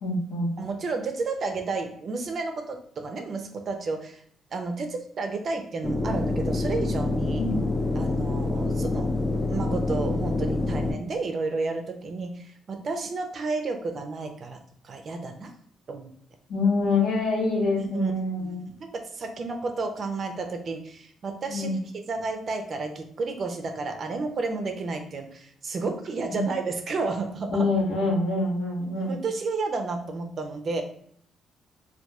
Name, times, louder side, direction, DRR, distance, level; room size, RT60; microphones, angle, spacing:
voice 1, 0.0-0.5 7.4-7.6 16.5-18.6 21.5-21.8 26.3-26.4 27.5-29.2, left 3 dB, 85° left, -2 dB, 0.9 m, -25 dB
voice 2, 0.6-4.2 4.5-7.5 8.0-9.1 9.5-14.6 14.8-15.5 15.9-16.1 17.8-18.1 18.4-18.5 18.8-21.7 22.1-27.7 29.1-30.8, right 3 dB, 50° right, 5 dB, 0.5 m, -31 dB
sound 1, 5.8-10.9, left 2 dB, 25° left, 0.4 m, -26 dB
2.8 x 2.3 x 2.3 m, 0.63 s
cardioid pair, 90°, 0 cm